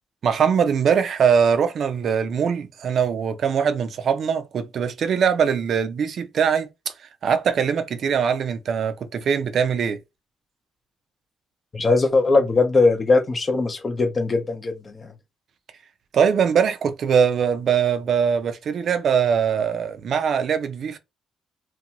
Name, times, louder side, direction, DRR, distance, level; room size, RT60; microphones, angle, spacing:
voice 1, 0.2-6.9 7.2-10.0 16.1-21.0, right 7 dB, 60° right, 0.4 m, -22 dB
voice 2, 11.7-15.1, left 3 dB, 35° left, 0.6 m, -20 dB
2.6 x 2.2 x 2.8 m
cardioid pair, 90°, 0 cm